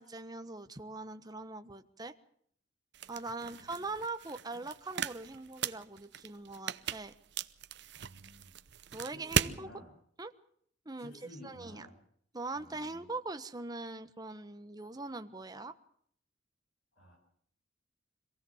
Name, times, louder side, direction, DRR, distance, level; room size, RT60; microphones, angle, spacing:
voice 1, 0.0-2.1 3.1-7.1 8.9-9.7 10.2-10.3 10.8-11.1 11.4-11.9 12.3-15.7, right 3 dB, 20° right, 9 dB, 1.3 m, -42 dB
sound 1, 2.9-9.6, right 7 dB, 65° right, 0.8 m, -38 dB
voice 2, 3.5-3.8 8.0-8.5 9.1-9.9 11.0-12.0 12.5-13.1 17.0-17.2, equal, 65° left, 1 dB, 7.3 m, -52 dB
26.0 x 16.5 x 7.3 m, 0.65 s
head